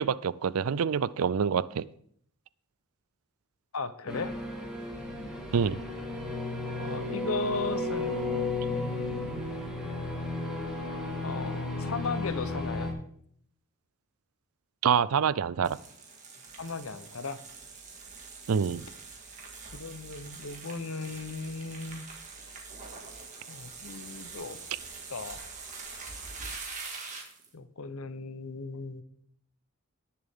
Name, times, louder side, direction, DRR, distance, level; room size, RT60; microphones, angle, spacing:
voice 1, 0.0-1.8 5.5-5.8 14.8-15.8 18.5-18.8, right 7 dB, 75° right, 19 dB, 0.4 m, -26 dB
voice 2, 3.7-4.3 6.8-8.2 8.7-9.5 11.2-12.9 16.6-17.4 19.7-22.1 23.5-24.6 25.1-25.5 27.5-29.0, left 3 dB, 70° left, 12 dB, 0.9 m, -36 dB
sound 1, 4.1-12.9, left 2 dB, 5° right, 2.1 m, -33 dB
sound 2, 15.6-27.5, right 4 dB, 35° right, 2.1 m, -44 dB
18.5 x 7.0 x 3.7 m, 0.65 s
head